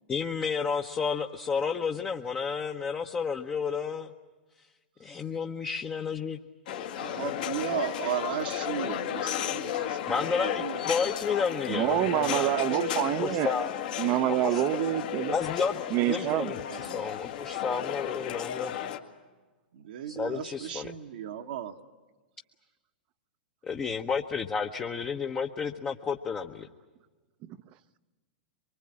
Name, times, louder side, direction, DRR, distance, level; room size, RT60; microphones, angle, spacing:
voice 1, 0.1-4.1 5.0-6.4 10.1-12.5 13.2-13.7 14.4-14.6 15.3-18.7 20.1-20.9 23.6-26.7, left 6 dB, 20° left, 4 dB, 1.0 m, -31 dB
sound 1, 6.7-19.0, left 11 dB, 60° left, 1.9 m, -33 dB
voice 2, 7.0-10.8 12.4-13.0 16.0-17.1 19.7-21.7, right 11 dB, 65° right, 3 dB, 1.3 m, -36 dB
voice 3, 11.7-13.5 14.0-15.4 15.9-16.5 27.5-27.6, right 14 dB, 40° right, 14 dB, 0.8 m, -27 dB
24.5 x 24.0 x 8.7 m, 1.3 s
figure-of-eight pair, 100°, 5 cm